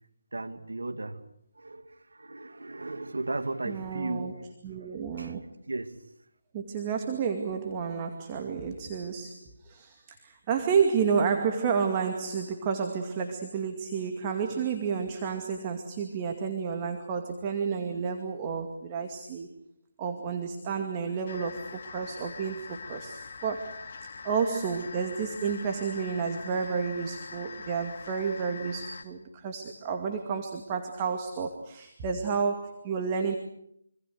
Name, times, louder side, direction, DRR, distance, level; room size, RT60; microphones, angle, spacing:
voice 1, 0.3-1.2 1.6-4.4 5.2-5.3 5.7-6.0, right 2 dB, 80° right, 7 dB, 2.8 m, -35 dB
voice 2, 3.7-5.4 6.5-19.5 20.0-23.7 24.2-33.3, right 6 dB, 25° right, 4 dB, 2.3 m, -31 dB
sound 1, 21.3-29.0, left 5 dB, 45° left, 3.1 m, -43 dB
26.5 x 26.5 x 6.4 m, 0.73 s
figure-of-eight pair, 155°, 0 cm